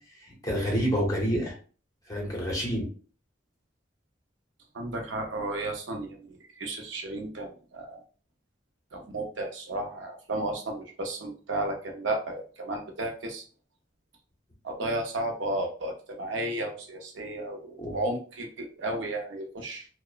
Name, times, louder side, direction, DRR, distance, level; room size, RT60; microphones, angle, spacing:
voice 1, 0.4-1.6 2.1-2.9 17.8-17.9, equal, 20° left, -2 dB, 0.8 m, -27 dB
voice 2, 4.7-8.0 8.9-13.4 14.6-19.9, right 2 dB, 80° right, 2 dB, 0.6 m, -33 dB
2.9 x 2.1 x 2.3 m, 0.38 s
head